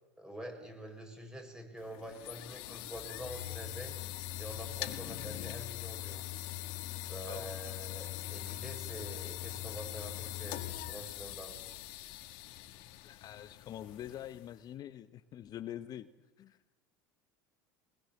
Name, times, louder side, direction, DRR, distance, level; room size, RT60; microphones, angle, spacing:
voice 1, 0.2-4.0 4.4-6.2 7.1-11.7, right 1 dB, 5° right, 3 dB, 6.7 m, -46 dB
sound 1, 1.8-14.6, left 14 dB, 65° left, 1.5 m, -42 dB
voice 2, 13.0-16.1 16.4-16.6, left 11 dB, 45° left, 13 dB, 0.9 m, -45 dB
22.0 x 20.0 x 7.8 m, 1.0 s
hypercardioid pair, 80°, 9 cm